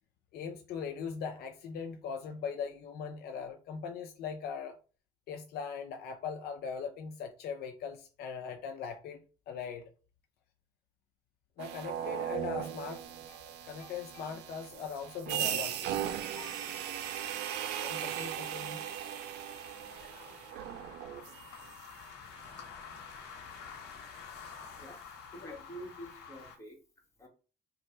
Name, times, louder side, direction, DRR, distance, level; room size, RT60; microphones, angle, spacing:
voice 1, 0.3-4.7 5.3-9.9 11.6-16.0 16.3-16.6 17.8-18.8, left 6 dB, 70° left, 0.5 m, -40 dB
sound 1, 11.6-21.7, right 10 dB, 85° right, 0.5 m, -38 dB
sound 2, 11.7-26.6, left 6 dB, 90° left, 1.0 m, -51 dB
voice 2, 24.4-27.3, right 1 dB, 15° left, 1.4 m, -49 dB
3.2 x 2.4 x 4.3 m
cardioid pair, 110°, 17 cm